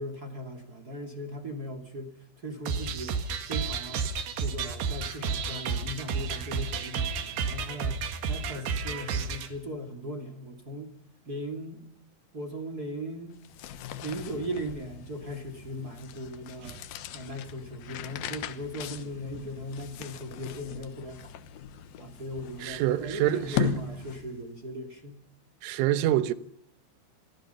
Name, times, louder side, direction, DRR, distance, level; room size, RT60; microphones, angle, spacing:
voice 1, 0.0-3.2 3.5-4.1 4.3-10.9 11.2-11.8 12.3-13.3 14.0-16.8 17.1-21.3 22.0-25.2, equal, 35° right, 1.6 m, -38 dB
sound 1, 2.7-9.5, right 5 dB, 60° right, 3.4 m, -31 dB
sound 2, 13.3-24.5, left 8 dB, 75° left, 2.3 m, -38 dB
voice 2, 22.6-23.8 25.6-26.3, right 13 dB, 75° right, 3.4 m, -26 dB
28.0 x 22.5 x 5.7 m
omnidirectional pair, 6.0 m